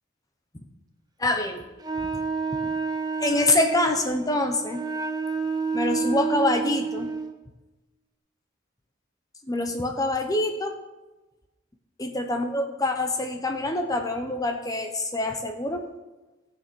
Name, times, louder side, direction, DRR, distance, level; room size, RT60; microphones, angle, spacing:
voice 1, 1.2-1.6 3.2-4.8 5.7-7.1 9.5-10.7 12.0-15.8, left 2 dB, 20° left, 5 dB, 0.9 m, -25 dB
Wind instrument woodwind instrument, 1.8-7.3, right 4 dB, 20° right, 1.1 m, -29 dB
15.5 x 7.0 x 6.1 m, 1.1 s
head